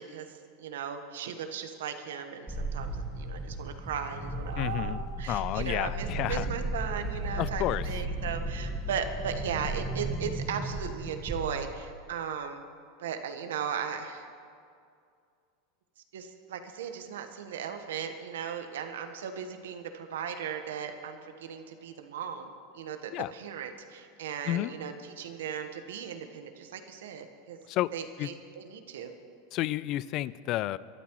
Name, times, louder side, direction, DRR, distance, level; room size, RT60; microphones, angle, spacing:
voice 1, 0.0-12.7 13.0-14.3 16.1-27.6 27.9-29.1, right 7 dB, 90° right, 7 dB, 1.2 m, -37 dB
sound 1, 2.5-11.8, right 1 dB, 10° right, 1.6 m, -35 dB
voice 2, 4.6-5.0 5.3-6.5 7.4-7.9 23.1-23.3 24.4-24.7 27.7-27.9 28.2-28.3 29.5-30.8, left 15 dB, 45° left, 18 dB, 0.4 m, -30 dB
23.0 x 12.5 x 3.1 m, 2.3 s
supercardioid pair, 130°, 0 cm